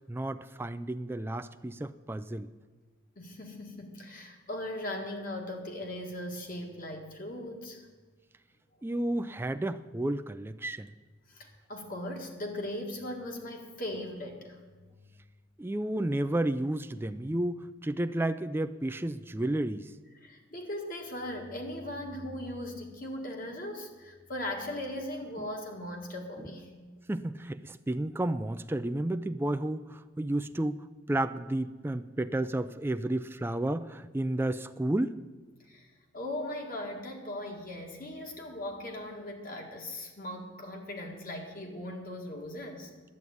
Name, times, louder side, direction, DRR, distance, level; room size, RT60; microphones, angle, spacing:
voice 1, 0.1-2.5 8.8-10.9 15.6-19.9 25.4-25.5 26.4-26.5 27.1-30.8 31.1-35.2, right 1 dB, 10° right, 11 dB, 0.3 m, -32 dB
voice 2, 3.2-7.9 11.3-15.0 17.2-17.3 20.2-27.1 35.7-42.9, left 1 dB, 45° left, 2 dB, 2.0 m, -39 dB
11.0 x 8.4 x 9.4 m, 1.4 s
head